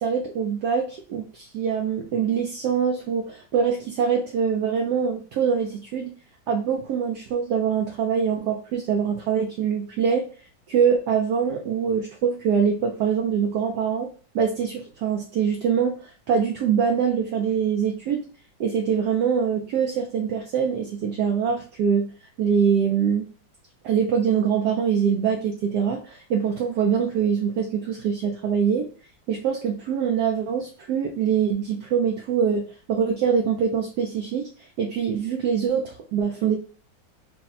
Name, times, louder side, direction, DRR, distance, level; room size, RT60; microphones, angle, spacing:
voice 1, 0.0-6.1 6.5-10.3 10.7-14.1 14.3-18.2 18.6-22.0 22.4-23.3 23.8-28.9 29.3-34.5 34.8-36.6, right 7 dB, 70° right, 2 dB, 1.0 m, -24 dB
4.2 x 2.2 x 4.0 m, 0.38 s
omnidirectional pair, 2.2 m